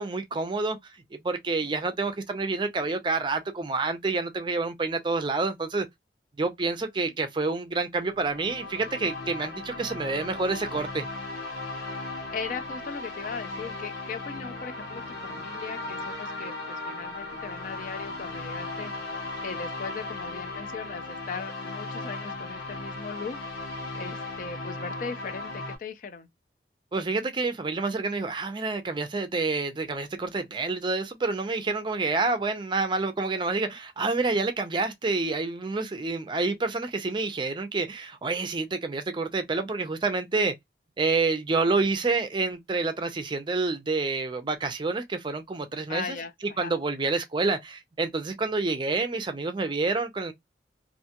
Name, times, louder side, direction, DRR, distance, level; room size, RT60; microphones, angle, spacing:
voice 1, 0.0-5.9 6.4-11.0 26.9-40.5 41.0-46.2 46.6-50.3, right 3 dB, 25° right, 0.4 m, -28 dB
sound 1, 8.1-25.8, left 2 dB, 85° left, 1.1 m, -37 dB
voice 2, 12.3-18.9 19.4-23.4 23.9-26.3 45.9-46.7, left 5 dB, 45° left, 0.4 m, -38 dB
2.5 x 2.3 x 2.8 m
head